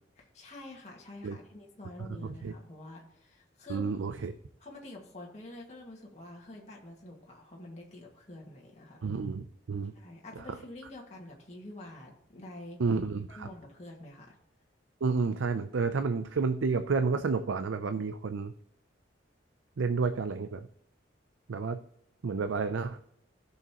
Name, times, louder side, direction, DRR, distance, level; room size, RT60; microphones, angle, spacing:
voice 1, 0.2-3.9 4.6-9.1 9.9-12.8 13.3-14.4, left 1 dB, 35° left, -2 dB, 1.9 m, -47 dB
voice 2, 3.7-4.3 9.0-9.9 12.8-13.5 15.0-18.5 19.8-20.7 21.5-21.8 22.2-23.0, right 4 dB, 85° right, 10 dB, 0.5 m, -30 dB
15.5 x 6.5 x 3.0 m, 0.73 s
head